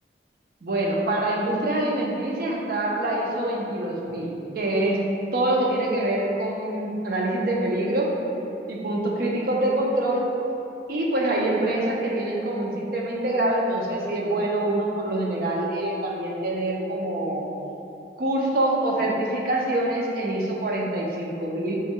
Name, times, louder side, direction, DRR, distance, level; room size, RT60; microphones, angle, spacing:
voice 1, 0.6-8.1 8.7-10.3 10.9-17.5 18.2-21.9, right 1 dB, 55° right, -2 dB, 0.5 m, -25 dB
3.4 x 2.2 x 4.4 m, 2.9 s
head